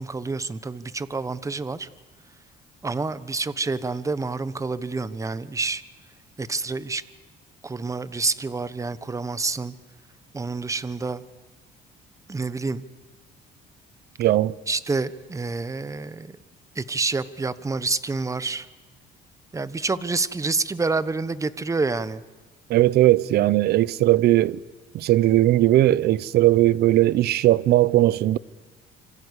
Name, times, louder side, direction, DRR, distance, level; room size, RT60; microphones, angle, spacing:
voice 1, 0.0-1.9 2.8-5.8 6.4-7.0 7.6-9.7 10.3-11.2 12.3-12.8 14.7-16.4 16.7-18.7 19.5-22.2, right 3 dB, 20° right, 1.2 m, -28 dB
voice 2, 14.2-14.5 22.7-24.6 24.9-28.4, right 15 dB, 70° right, 0.8 m, -18 dB
27.0 x 26.0 x 8.4 m
cardioid pair, 110°, 17 cm